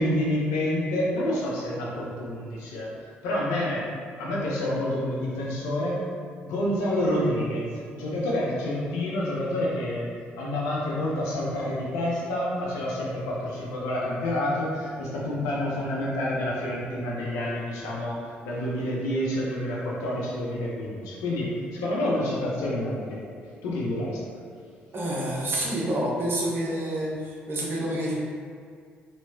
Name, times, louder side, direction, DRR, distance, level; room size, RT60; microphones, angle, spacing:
voice 1, 0.0-2.9 3.2-3.8 4.2-6.0 6.4-7.6 7.9-10.1 10.3-18.2 18.4-23.2 23.6-24.2, left 1 dB, 75° left, -6 dB, 0.9 m, -28 dB
voice 2, 24.9-28.1, right 1 dB, 45° right, -4 dB, 1.0 m, -28 dB
3.3 x 3.1 x 2.8 m, 2.2 s
hypercardioid pair, 45°, 6 cm